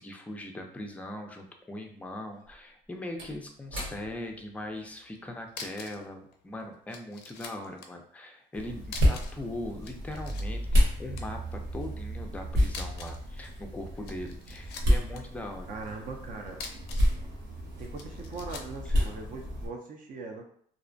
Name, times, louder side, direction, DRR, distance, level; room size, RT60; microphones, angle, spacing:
voice 1, 0.0-15.7 18.9-19.1, left 1 dB, 10° left, 3 dB, 0.4 m, -40 dB
Slam / Wood, 2.3-7.0 7.3-7.5, equal, 85° right, 1.4 m, -46 dB
sound 1, 5.1-5.2 5.5-6.1 6.3-6.4 6.9-7.9 8.8-9.4 9.7-10.4 10.7-11.2 12.7-13.3 13.9-15.2 16.5-17.2 18.0-18.8, left 5 dB, 75° left, 0.4 m, -43 dB
sound 2, 8.5-19.7, equal, 70° right, 1.0 m, -30 dB
voice 2, 15.7-16.6 17.8-20.4, right 4 dB, 50° right, 2 dB, 0.5 m, -40 dB
2.4 x 2.0 x 2.5 m, 0.62 s
cardioid pair, 110°, 17 cm